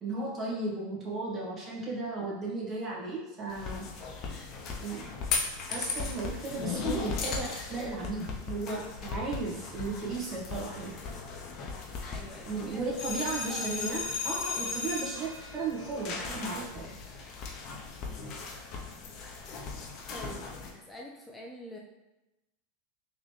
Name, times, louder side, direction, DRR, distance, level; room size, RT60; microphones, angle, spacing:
voice 1, 0.0-3.9 4.7-5.1 5.7-11.0 12.4-16.9, right 3 dB, 30° right, -4 dB, 1.4 m, -35 dB
sound 1, 3.5-20.7, left 4 dB, 45° left, 0.7 m, -37 dB
voice 2, 12.1-13.9 18.0-18.4 20.1-21.8, equal, 10° left, -2 dB, 0.5 m, -47 dB
3.9 x 2.9 x 3.2 m, 1.0 s
hypercardioid pair, 100°, 0 cm